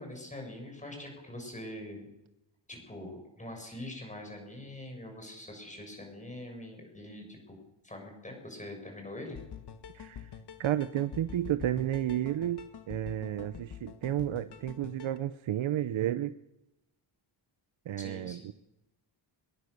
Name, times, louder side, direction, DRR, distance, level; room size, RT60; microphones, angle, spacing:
voice 1, 0.0-2.1 2.7-7.6 7.8-9.4 18.0-18.5, left 1 dB, 15° left, 3 dB, 6.7 m, -43 dB
sound 1, 9.3-15.2, left 8 dB, 60° left, 1.6 m, -46 dB
voice 2, 9.9-10.3 10.6-16.4 17.9-18.5, right 12 dB, 90° right, 12 dB, 0.9 m, -32 dB
22.0 x 22.0 x 6.7 m, 0.91 s
wide cardioid pair, 175°, 46 cm